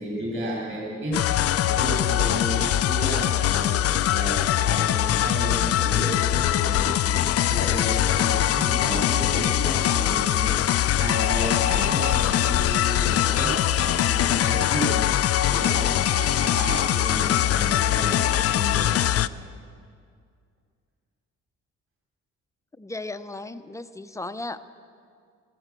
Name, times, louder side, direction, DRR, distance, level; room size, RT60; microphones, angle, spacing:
voice 1, 0.0-1.3 1.6-19.1, right 1 dB, 40° right, -4 dB, 3.9 m, -32 dB
sound 1, 1.1-19.3, left 12 dB, 55° left, 0.4 m, -22 dB
voice 2, 22.8-24.7, left 2 dB, 10° left, 11 dB, 0.6 m, -35 dB
15.0 x 13.0 x 7.6 m, 2.2 s
cardioid pair, 90°, 30 cm